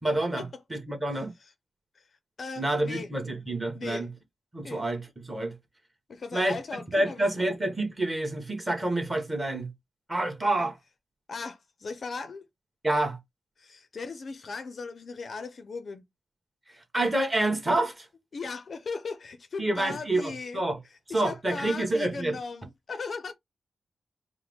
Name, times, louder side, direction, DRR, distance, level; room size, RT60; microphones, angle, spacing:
voice 1, 0.0-1.3 2.6-4.1 4.5-5.5 6.3-9.7 10.1-10.7 12.8-13.2 16.9-18.1 19.6-20.8 21.1-22.4, right 1 dB, 15° right, 1.3 m, -28 dB
voice 2, 2.4-3.1 3.7-4.1 4.6-4.9 6.1-7.5 10.6-10.7 11.3-12.4 13.6-16.0 18.3-20.6 21.1-23.3, left 4 dB, 50° left, 0.5 m, -38 dB
4.6 x 2.1 x 3.5 m
wide cardioid pair, 120°, 0 cm